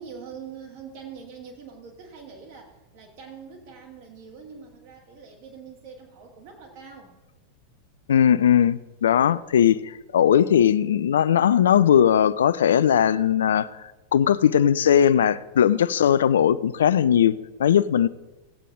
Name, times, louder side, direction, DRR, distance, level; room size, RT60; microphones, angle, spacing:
voice 1, 0.0-7.2, right 6 dB, 50° right, 2 dB, 2.3 m, -43 dB
voice 2, 8.1-18.1, left 9 dB, 65° left, 16 dB, 0.3 m, -19 dB
16.0 x 8.2 x 3.7 m, 1.1 s
figure-of-eight pair, 90°, 0 cm